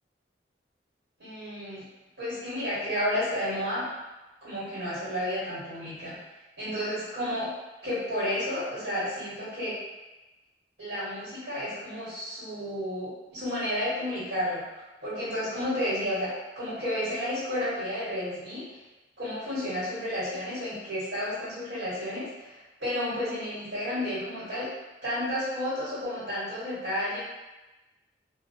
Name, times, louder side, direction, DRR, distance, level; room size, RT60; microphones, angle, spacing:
voice 1, 1.2-1.8 2.2-3.9 4.4-6.2 6.6-7.5 7.8-9.8 10.8-14.6 15.0-18.6 19.2-24.7 25.0-27.2, left 1 dB, 85° right, -12 dB, 1.3 m, -31 dB
2.3 x 2.2 x 2.5 m, 1.1 s
head